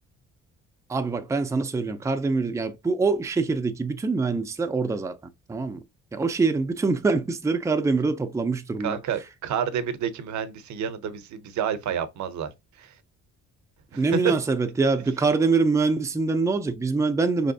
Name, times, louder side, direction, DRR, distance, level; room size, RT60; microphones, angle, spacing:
voice 1, 0.9-5.2 5.5-5.8 6.1-9.0 13.9-17.5, right 4 dB, 10° right, 0.4 m, -24 dB
voice 2, 8.8-12.5 12.8-12.9 13.9-14.3, right 8 dB, 70° right, 0.7 m, -29 dB
3.4 x 3.0 x 2.7 m
cardioid pair, 90°, 30 cm